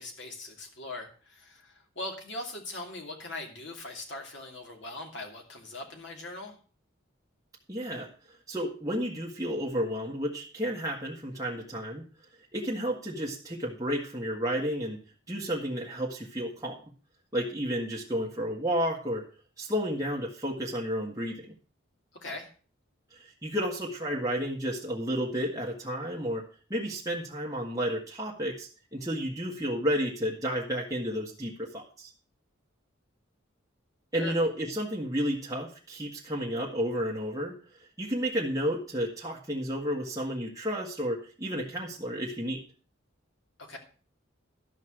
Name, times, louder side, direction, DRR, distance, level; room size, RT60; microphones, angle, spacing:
voice 1, 0.0-6.5 22.2-22.5 34.1-34.3 43.6-43.8, left 2 dB, 60° left, 2 dB, 2.5 m, -40 dB
voice 2, 7.7-8.1 8.5-12.1 12.5-15.0 15.3-16.8 17.3-19.2 19.6-21.5 23.1-26.4 26.7-32.1 34.1-37.5 38.0-42.6, equal, 15° right, -3 dB, 1.6 m, -31 dB
12.5 x 5.4 x 6.4 m, 0.39 s
head